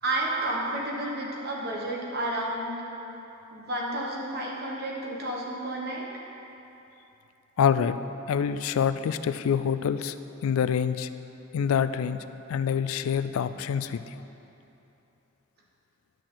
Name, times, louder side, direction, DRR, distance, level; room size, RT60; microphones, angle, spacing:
voice 1, 0.0-2.7 3.5-6.0, right 1 dB, 50° right, -3 dB, 1.3 m, -31 dB
voice 2, 7.6-8.0 8.3-10.1 10.4-11.1 11.5-12.2 12.5-14.0, left 7 dB, 85° left, 12 dB, 0.3 m, -26 dB
10.5 x 6.4 x 3.9 m, 3.0 s
head